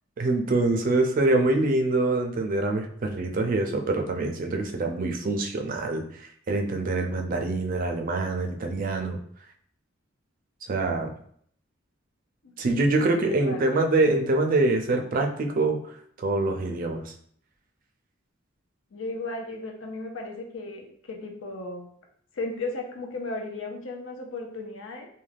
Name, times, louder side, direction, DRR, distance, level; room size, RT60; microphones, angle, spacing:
voice 1, 0.2-6.0 6.5-9.2 10.7-11.1 12.6-15.8 16.2-17.0, right 2 dB, 45° right, 3 dB, 0.4 m, -25 dB
voice 2, 13.1-13.6 18.9-21.9 22.3-25.1, left 2 dB, 70° left, 2 dB, 0.5 m, -35 dB
2.3 x 2.2 x 3.2 m, 0.63 s
head